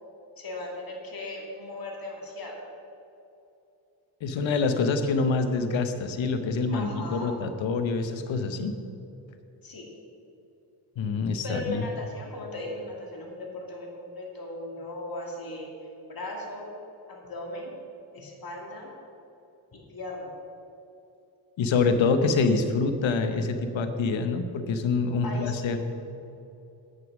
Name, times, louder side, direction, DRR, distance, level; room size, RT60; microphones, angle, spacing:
voice 1, 0.4-2.5 6.7-7.3 9.6-9.9 11.4-15.7 16.1-16.7 17.1-17.7 18.1-18.9 19.7-20.3 25.2-25.8, left 2 dB, 50° left, -1 dB, 2.5 m, -37 dB
voice 2, 4.2-8.7 11.0-11.9 21.6-25.8, left 4 dB, 85° left, 8 dB, 0.9 m, -26 dB
8.9 x 6.7 x 6.1 m, 2.8 s
cardioid pair, 75°, 45 cm